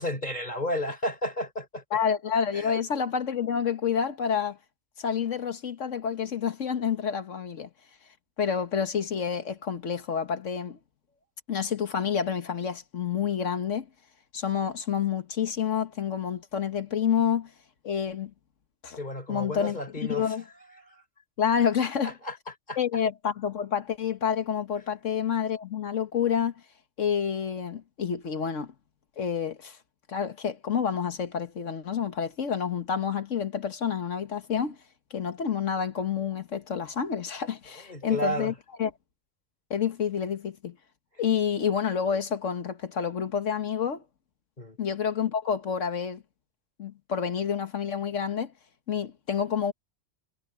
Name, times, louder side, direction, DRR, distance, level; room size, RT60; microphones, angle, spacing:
voice 1, 0.0-1.8 2.5-2.7 19.0-20.3 20.9-21.0 22.0-22.4 22.7-22.8 37.9-38.5 44.6-44.8, equal, 35° left, 5.1 m, -32 dB
voice 2, 1.9-4.6 5.0-7.7 8.4-10.8 11.5-13.9 14.3-17.5 17.8-18.3 18.8-19.0 19.3-19.8 20.1-20.4 21.4-22.1 22.8-26.5 27.0-28.7 29.2-29.8 30.1-34.8 35.1-38.5 38.8-38.9 39.7-40.7 41.2-44.0 44.8-46.2 46.8-48.5 48.9-49.7, left 7 dB, 80° left, 1.7 m, -28 dB
omnidirectional pair, 1.3 m